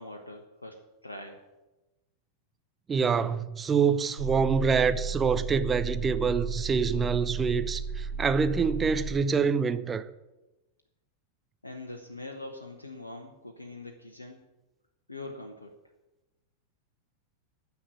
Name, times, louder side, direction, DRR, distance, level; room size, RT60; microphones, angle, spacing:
voice 1, 0.0-1.4 11.6-14.5 15.1-15.7, left 2 dB, 80° left, 1.0 m, -43 dB
voice 2, 2.9-10.1, right 5 dB, 20° right, 0.7 m, -26 dB
sound 1, 4.2-9.2, right 5 dB, 80° right, 5.2 m, -34 dB
10.0 x 7.2 x 9.0 m
figure-of-eight pair, 90°, 0 cm